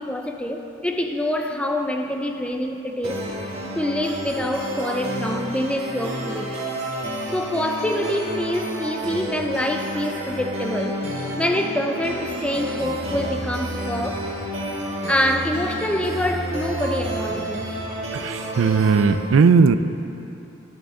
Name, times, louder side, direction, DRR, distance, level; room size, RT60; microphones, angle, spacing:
voice 1, 0.0-3.3 3.8-6.6 7.3-11.1 11.4-14.3 15.1-17.7, left 1 dB, 5° left, 4 dB, 0.4 m, -26 dB
sound 1, 3.0-19.0, right 1 dB, 35° right, 1.7 m, -30 dB
voice 2, 18.1-19.8, right 5 dB, 80° right, 12 dB, 0.4 m, -17 dB
10.5 x 10.5 x 3.7 m, 2.9 s
head